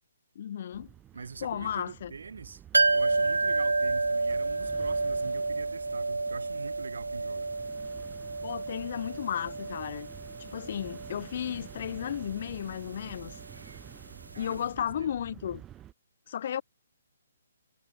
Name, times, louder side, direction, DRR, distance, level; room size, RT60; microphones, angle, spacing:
voice 1, 0.4-0.9 1.4-2.1 8.4-10.1 10.4-13.4 14.4-15.6 16.3-16.6, left 9 dB, 50° left, 0.5 m, -34 dB
sound 1, 0.7-15.9, right 11 dB, 15° right, 3.0 m, -50 dB
voice 2, 1.1-2.6 2.9-7.5 14.3-15.1, right 5 dB, 70° right, 1.7 m, -44 dB
sound 2, 2.7-14.4 14.6-14.7, right 3 dB, 85° right, 0.5 m, -31 dB
figure-of-eight pair, 140°, 0 cm